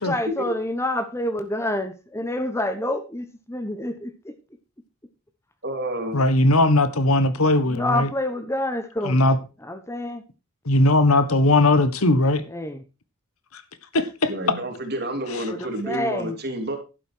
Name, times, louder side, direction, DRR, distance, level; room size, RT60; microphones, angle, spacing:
voice 1, 0.1-4.3 7.6-9.2 9.6-10.2 12.5-12.8 15.4-16.4, left 1 dB, 10° left, 1.1 m, -28 dB
voice 2, 5.6-6.3 14.3-16.8, right 1 dB, 50° right, 3.1 m, -29 dB
voice 3, 6.1-8.1 9.0-9.4 10.6-12.4 13.5-13.6 13.9-14.3, left 2 dB, 85° left, 1.4 m, -19 dB
11.5 x 9.1 x 4.6 m
head